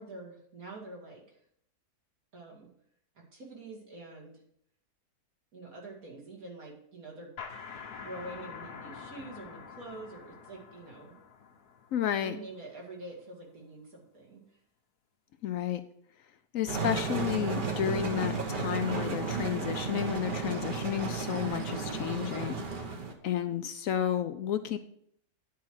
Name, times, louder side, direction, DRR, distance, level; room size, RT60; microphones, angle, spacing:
voice 1, 0.0-1.4 2.3-2.7 3.3-4.4 5.5-7.3 8.0-11.1 12.2-14.4, right 2 dB, 65° right, -1 dB, 2.6 m, -46 dB
sound 1, 7.4-12.8, left 6 dB, 85° left, 1.7 m, -46 dB
voice 2, 11.9-12.4 15.4-15.8 16.5-22.6 23.2-24.8, left 10 dB, 70° left, 10 dB, 0.9 m, -31 dB
sound 2, 16.7-23.1, right 4 dB, 35° right, 1.1 m, -33 dB
9.6 x 4.7 x 6.2 m, 0.69 s
omnidirectional pair, 1.6 m